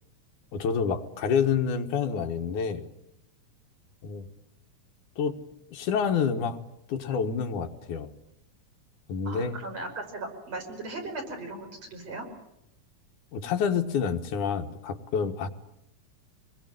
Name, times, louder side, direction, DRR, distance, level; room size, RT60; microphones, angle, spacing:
voice 1, 0.5-2.9 4.0-4.3 5.2-5.4 5.7-6.6 6.9-8.1 9.1-9.6 13.3-15.5, left 6 dB, 85° left, 5 dB, 3.0 m, -28 dB
voice 2, 9.3-12.3, right 2 dB, 55° right, 2 dB, 6.4 m, -37 dB
25.5 x 21.0 x 9.2 m, 0.83 s
omnidirectional pair, 3.5 m